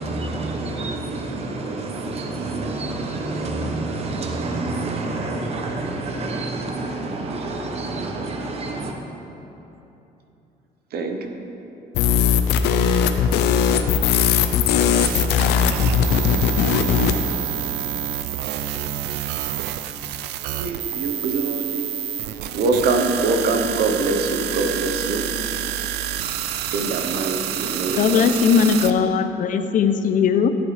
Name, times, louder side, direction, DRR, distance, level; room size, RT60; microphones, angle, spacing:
voice 1, 0.0-9.0, right 2 dB, 35° right, 2 dB, 0.9 m, -28 dB
voice 2, 10.9-11.3 20.5-22.0 22.5-25.3 26.7-28.2, right 3 dB, 65° right, 4 dB, 1.0 m, -24 dB
sound 1, 11.9-17.2, left 7 dB, 85° left, 0.6 m, -19 dB
sound 2, 14.8-28.9, right 11 dB, 80° right, 0.5 m, -28 dB
voice 3, 27.9-30.5, left 6 dB, 50° left, 9 dB, 0.6 m, -18 dB
14.0 x 8.0 x 3.4 m, 3.0 s
cardioid pair, 110°, 17 cm